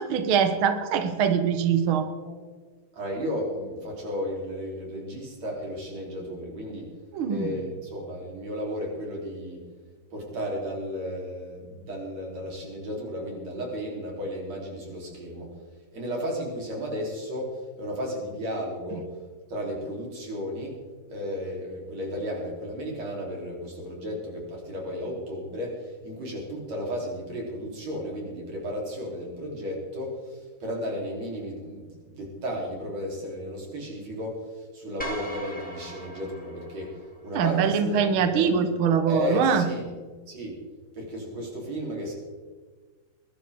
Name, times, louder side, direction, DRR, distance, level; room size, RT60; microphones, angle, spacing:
voice 1, 0.0-2.1 7.1-7.6 37.3-39.7, right 7 dB, 90° right, 8 dB, 1.1 m, -23 dB
voice 2, 2.9-6.9 7.3-9.6 10.1-15.5 15.9-19.1 19.5-20.8 21.1-36.9 37.2-38.0 38.3-38.5 39.1-39.8 40.3-40.6 40.9-42.2, equal, 50° right, -2 dB, 4.7 m, -34 dB
sound 1, 35.0-37.4, equal, 5° left, 0.6 m, -39 dB
21.0 x 12.0 x 3.6 m, 1.4 s
omnidirectional pair, 4.0 m